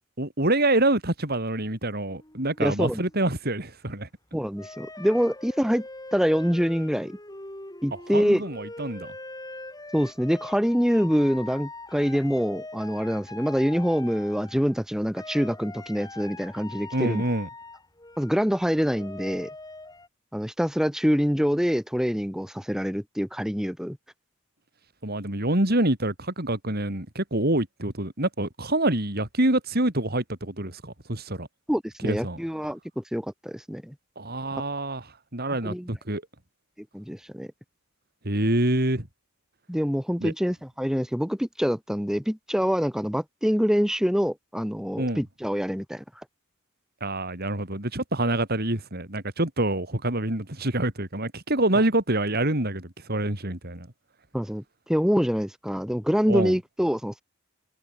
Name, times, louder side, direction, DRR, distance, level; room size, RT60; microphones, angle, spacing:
voice 1, 0.2-4.1 8.1-9.1 16.9-17.5 25.0-31.5 32.0-32.4 34.2-36.2 38.2-39.1 40.2-40.3 45.0-45.2 47.0-53.9 56.3-56.5, right 1 dB, 50° right, 4.2 m, -26 dB
sound 1, 2.1-3.3 4.5-14.8 15.1-20.1, left 2 dB, 20° left, 7.5 m, -42 dB
voice 2, 2.6-3.0 4.3-5.8 6.1-7.2 7.8-8.4 9.9-17.2 18.2-19.5 20.3-24.0 31.7-33.8 34.5-34.6 35.6-35.9 36.9-37.5 39.7-46.0 54.3-54.6 54.9-57.2, equal, 5° right, 2.9 m, -25 dB
head